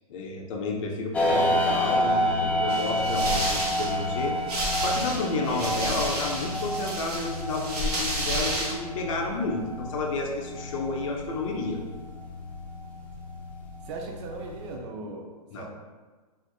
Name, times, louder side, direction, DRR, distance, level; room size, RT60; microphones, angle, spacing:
voice 1, 0.1-4.4 4.8-11.8 15.5-15.7, left 3 dB, 55° left, 1 dB, 0.6 m, -31 dB
sound 1, 1.1-14.8, equal, 5° left, 0.4 m, -30 dB
sound 2, 2.7-8.7, right 1 dB, 80° right, 0.8 m, -31 dB
voice 2, 13.8-15.7, right 3 dB, 50° right, 1 dB, 0.5 m, -38 dB
3.4 x 2.5 x 2.3 m, 1.4 s
hypercardioid pair, 120°, 20 cm